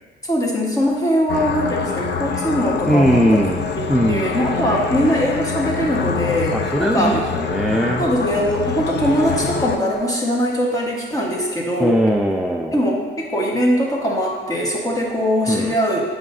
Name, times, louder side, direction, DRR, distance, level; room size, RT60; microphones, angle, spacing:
voice 1, 0.2-3.4 3.8-7.1 8.0-12.0 12.7-16.0, equal, 15° left, -3 dB, 1.4 m, -21 dB
sound 1, 1.3-9.8, left 5 dB, 60° left, 0.6 m, -25 dB
voice 2, 2.9-3.6 3.9-4.3 6.5-8.1 11.8-12.7 15.5-15.7, equal, ahead, 0 dB, 0.4 m, -19 dB
7.4 x 4.9 x 2.7 m, 1.5 s
cardioid pair, 90°, 20 cm